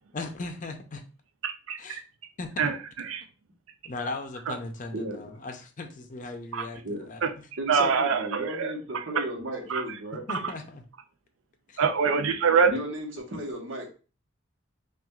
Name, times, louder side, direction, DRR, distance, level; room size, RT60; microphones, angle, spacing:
voice 1, 0.1-1.0 1.8-2.0 2.4-2.7 3.8-7.5 9.6-9.7 10.3-10.8 11.7-11.8, left 3 dB, 40° left, 6 dB, 0.6 m, -38 dB
voice 2, 1.4-1.8 2.6-2.7 3.1-3.2 4.5-4.6 6.5-6.6 7.2-7.3 7.7-8.7 9.2-9.3 9.7-9.8 11.8-12.7, right 6 dB, 85° right, 7 dB, 0.5 m, -24 dB
voice 3, 4.9-5.3 6.8-7.1 7.6-10.2 12.7-13.9, right 1 dB, 70° right, 1 dB, 1.2 m, -34 dB
5.8 x 2.4 x 2.3 m, 0.35 s
head